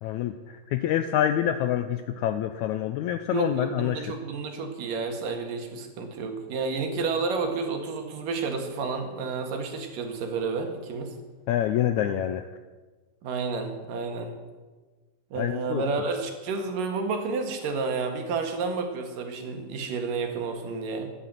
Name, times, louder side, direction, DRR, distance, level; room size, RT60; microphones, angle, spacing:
voice 1, 0.0-4.1 11.5-12.4 15.4-15.8, left 11 dB, 85° left, 10 dB, 1.7 m, -26 dB
voice 2, 3.3-11.1 13.2-14.3 15.3-21.1, right 4 dB, 75° right, 4 dB, 3.4 m, -30 dB
13.0 x 10.0 x 9.2 m, 1.3 s
omnidirectional pair, 4.0 m